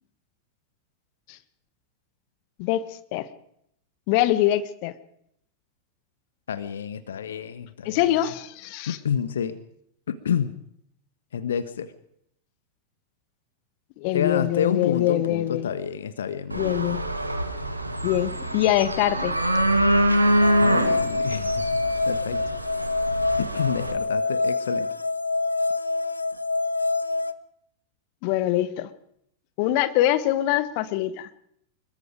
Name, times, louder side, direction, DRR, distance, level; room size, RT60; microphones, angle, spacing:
voice 1, 2.6-3.3 4.1-4.9 7.8-9.0 14.0-15.7 16.5-17.0 18.0-19.3 28.2-28.9 29.6-31.3, left 13 dB, 45° left, 13 dB, 1.4 m, -24 dB
voice 2, 6.5-8.2 8.9-9.6 10.1-10.6 11.3-11.9 14.1-16.8 20.6-21.6 22.1-22.4 23.4-24.9, left 7 dB, 65° left, 12 dB, 1.2 m, -29 dB
sound 1, 16.5-23.9, right 1 dB, 85° right, 2.2 m, -25 dB
sound 2, 20.4-27.3, left 3 dB, 80° left, 0.9 m, -26 dB
25.5 x 22.0 x 5.1 m, 0.74 s
figure-of-eight pair, 90°, 0 cm